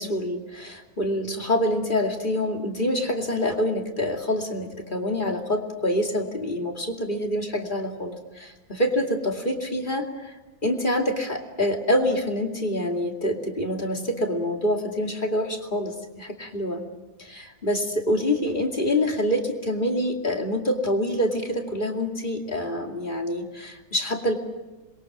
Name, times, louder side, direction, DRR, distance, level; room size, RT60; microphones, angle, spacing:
voice 1, 0.0-10.3 10.6-16.8 17.2-24.4, left 1 dB, 20° left, 3 dB, 2.5 m, -26 dB
27.5 x 22.0 x 6.2 m, 1.2 s
omnidirectional pair, 2.4 m